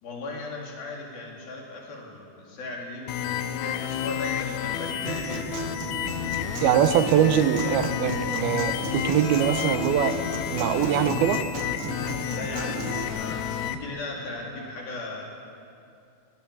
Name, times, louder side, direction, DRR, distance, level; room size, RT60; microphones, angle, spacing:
voice 1, 0.0-5.5 12.3-15.2, left 2 dB, 75° left, -2 dB, 5.4 m, -37 dB
sound 1, 3.1-13.7, left 10 dB, 90° left, 1.6 m, -31 dB
sound 2, 4.8-13.8, left 3 dB, 55° left, 1.2 m, -41 dB
Human voice / Acoustic guitar, 5.0-13.0, right 5 dB, 70° right, 1.3 m, -36 dB
voice 2, 6.6-10.2 10.5-11.5, right 9 dB, 90° right, 10 dB, 2.9 m, -23 dB
22.0 x 19.0 x 7.2 m, 2.6 s
omnidirectional pair, 4.3 m